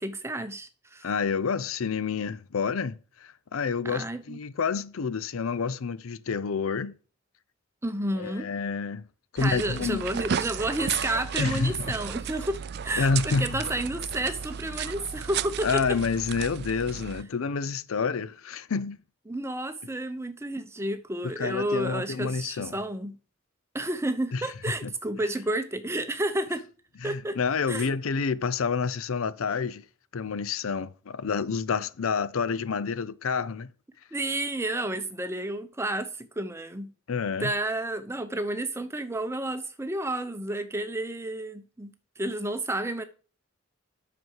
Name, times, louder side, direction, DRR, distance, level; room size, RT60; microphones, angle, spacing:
voice 1, 0.0-1.1 3.8-4.4 7.8-8.5 9.4-16.0 19.3-23.2 23.7-26.6 27.0-27.4 27.7-27.9 34.1-36.9 37.4-43.0, right 1 dB, 10° right, 0.7 m, -31 dB
voice 2, 1.0-6.9 8.1-9.0 9.3-10.0 11.4-11.9 13.0-13.5 15.6-19.0 21.4-22.7 24.3-24.5 24.8-24.9 27.0-29.8 30.1-33.7 37.1-37.5, left 5 dB, 75° left, 0.5 m, -28 dB
sound 1, 9.4-17.2, right 8 dB, 50° right, 0.4 m, -34 dB
9.4 x 6.0 x 4.6 m
head